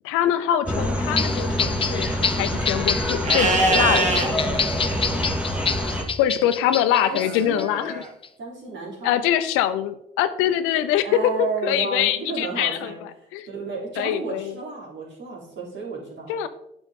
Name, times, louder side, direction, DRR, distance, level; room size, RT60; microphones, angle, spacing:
voice 1, 0.0-4.4 6.2-8.0 9.0-11.1 11.4-12.9 13.3-13.5 14.0-14.5 16.3-16.5, left 11 dB, 80° left, 11 dB, 0.6 m, -24 dB
sound 1, 0.7-6.0, equal, 5° right, 2.0 m, -26 dB
sound 2, 1.2-7.6 8.0-8.3, left 6 dB, 25° left, 0.4 m, -27 dB
Livestock farm animals working animals, 3.2-4.3 7.1-8.1, right 2 dB, 35° right, 2.1 m, -23 dB
voice 2, 6.3-6.7 7.0-7.7 8.4-9.2 11.0-13.0 13.5-16.3, right 4 dB, 60° right, -4 dB, 3.6 m, -33 dB
9.0 x 6.1 x 3.7 m, 0.80 s
hypercardioid pair, 55°, 21 cm